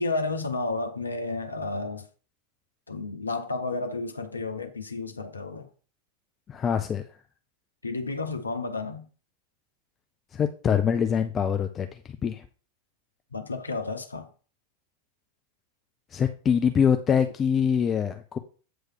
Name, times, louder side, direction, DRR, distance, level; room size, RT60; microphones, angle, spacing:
voice 1, 0.0-2.1 2.9-5.7 7.8-9.1 13.3-14.3, left 3 dB, 80° left, 0.9 m, -31 dB
voice 2, 6.5-7.0 10.3-12.4 16.1-18.4, left 7 dB, 25° left, 0.7 m, -24 dB
8.9 x 3.2 x 6.3 m
figure-of-eight pair, 90°, 0 cm